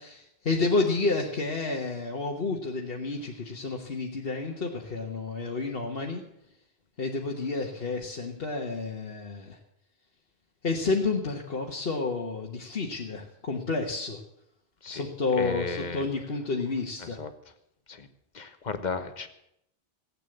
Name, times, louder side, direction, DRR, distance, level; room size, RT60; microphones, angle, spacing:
voice 1, 0.0-6.2 7.0-9.6 10.6-14.2 14.9-17.2, left 3 dB, 60° left, -1 dB, 1.6 m, -30 dB
voice 2, 15.4-16.1 17.0-17.3 17.9-18.1 18.3-19.3, left 4 dB, 45° left, 9 dB, 1.3 m, -34 dB
15.5 x 8.9 x 7.8 m, 0.78 s
omnidirectional pair, 1.1 m